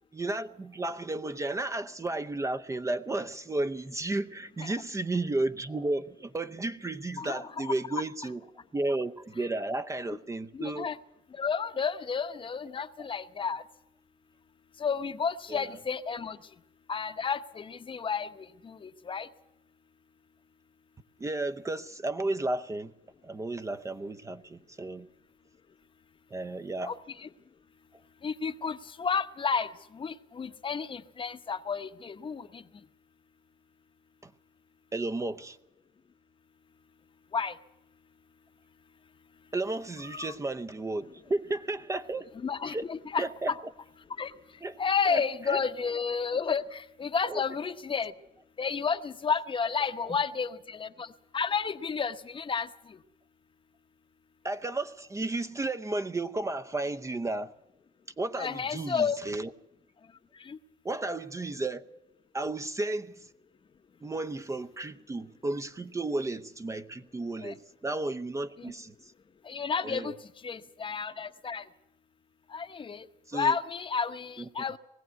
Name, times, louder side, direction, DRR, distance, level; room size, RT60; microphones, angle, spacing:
voice 1, 0.1-8.4 8.7-10.9 15.5-15.8 21.2-22.9 23.2-25.1 26.3-26.9 34.9-35.6 39.5-42.3 42.6-42.9 43.2-43.5 44.6-44.8 45.1-45.6 47.3-47.4 50.0-50.2 54.4-57.5 58.2-59.5 60.8-61.9 62.3-63.3 64.0-68.9 69.8-70.1 73.3-73.6 74.4-74.5, right 2 dB, 20° right, 0.7 m, -33 dB
voice 2, 7.2-8.0 10.1-10.2 10.5-11.0 11.3-13.6 14.8-16.4 16.9-19.3 26.9-27.0 27.2-27.3 28.2-32.6 37.3-37.6 40.1-40.3 42.4-43.6 44.2-44.3 44.8-48.1 48.6-53.0 58.4-59.2 60.5-60.6 67.4-67.5 68.6-68.7 69.4-70.1 70.4-71.6 72.5-73.1 73.3-74.8, left 6 dB, 30° left, 0.9 m, -31 dB
20.0 x 15.5 x 9.3 m
cardioid pair, 110°, 17 cm